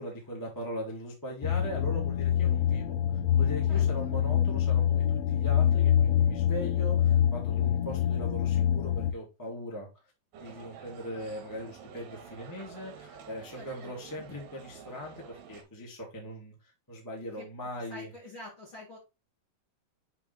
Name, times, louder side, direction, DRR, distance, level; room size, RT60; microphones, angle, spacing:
voice 1, 0.0-3.0 3.4-9.9 10.4-16.5 16.9-18.1, equal, 15° left, -2 dB, 0.7 m, -40 dB
sound 1, 1.4-9.1, left 9 dB, 85° left, 3.1 m, -25 dB
voice 2, 3.7-4.1 13.5-13.9 17.3-17.5 17.7-19.0, left 2 dB, 50° left, -3 dB, 1.6 m, -47 dB
sound 2, 10.3-15.6, right 7 dB, 70° right, 2.9 m, -49 dB
8.2 x 3.4 x 4.1 m, 0.26 s
omnidirectional pair, 5.3 m